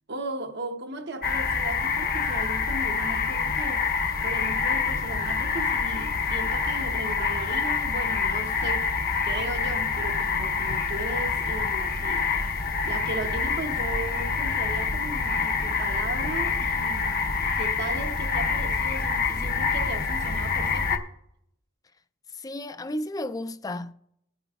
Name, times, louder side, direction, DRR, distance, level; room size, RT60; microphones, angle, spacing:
voice 1, 0.1-8.9 9.2-21.1, right 2 dB, 55° right, 0.9 m, -36 dB
sound 1, 1.2-21.0, left 5 dB, 45° left, 0.8 m, -26 dB
voice 2, 22.4-23.9, left 1 dB, 20° left, 0.4 m, -33 dB
21.0 x 9.2 x 2.3 m
head